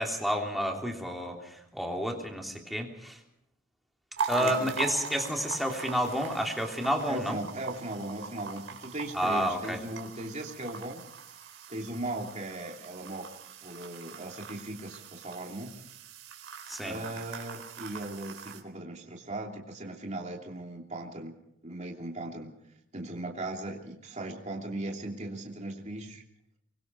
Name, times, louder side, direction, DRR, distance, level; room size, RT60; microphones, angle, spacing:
voice 1, 0.0-3.2 4.3-7.4 9.1-9.8 16.7-17.0, equal, ahead, 1 dB, 3.3 m, -30 dB
sound 1, 4.2-18.6, right 5 dB, 75° right, 4.1 m, -41 dB
voice 2, 4.4-4.7 7.0-11.0 11.7-15.8 16.8-21.3 21.6-22.5 22.9-26.2, right 1 dB, 35° right, 0 dB, 3.0 m, -38 dB
25.0 x 23.5 x 4.7 m, 0.75 s
head